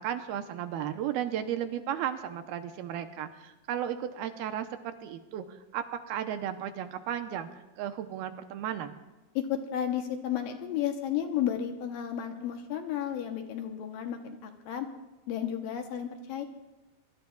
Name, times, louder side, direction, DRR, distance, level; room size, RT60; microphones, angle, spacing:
voice 1, 0.0-7.5 7.8-8.9, right 10 dB, 80° right, 7 dB, 2.5 m, -34 dB
voice 2, 9.4-14.9 15.3-16.4, left 10 dB, 75° left, 5 dB, 2.4 m, -32 dB
23.5 x 21.5 x 2.4 m, 1.1 s
omnidirectional pair, 4.6 m